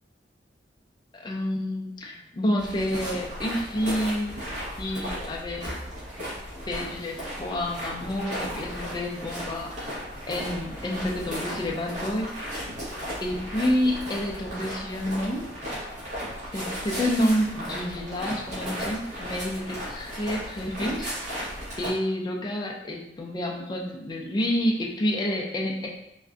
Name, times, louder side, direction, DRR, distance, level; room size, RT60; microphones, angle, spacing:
voice 1, 1.1-4.4 4.8-5.8 6.7-10.0 10.3-12.3 13.2-15.5 16.5-25.9, left 1 dB, 25° left, -1 dB, 0.3 m, -29 dB
sound 1, 2.6-21.9, equal, 45° right, 1.0 m, -35 dB
3.4 x 2.1 x 2.4 m, 0.82 s
head